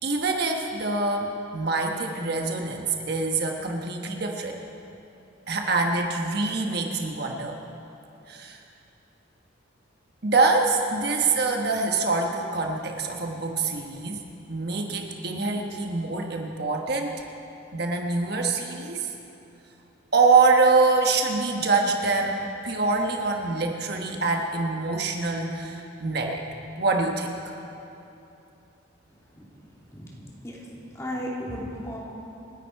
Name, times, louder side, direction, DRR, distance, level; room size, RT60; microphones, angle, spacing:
voice 1, 0.0-4.6 5.5-7.6 8.3-8.6 10.2-14.2 14.5-17.2 17.7-19.1 20.1-26.4 26.8-27.3, right 3 dB, 55° right, 2 dB, 1.2 m, -25 dB
voice 2, 30.9-32.0, equal, 15° left, -5 dB, 2.9 m, -34 dB
28.5 x 10.0 x 4.6 m, 2.9 s
head